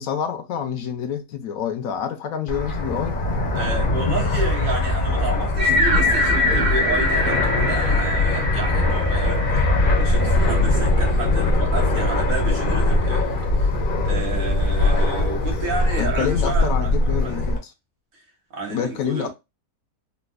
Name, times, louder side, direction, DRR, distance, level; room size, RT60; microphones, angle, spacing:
voice 1, 0.0-3.2 16.0-17.7 18.7-19.3, left 8 dB, 70° left, 1.0 m, -27 dB
Fixed-wing aircraft airplane, 2.5-17.6, left 2 dB, 45° left, 0.7 m, -21 dB
voice 2, 3.5-9.6 10.0-13.7 14.0-16.9 17.2-17.4 18.5-19.3, right 3 dB, 65° right, 1.6 m, -31 dB
sound 1, 5.6-10.8, left 1 dB, 35° right, 0.9 m, -23 dB
4.1 x 2.3 x 2.3 m
omnidirectional pair, 1.6 m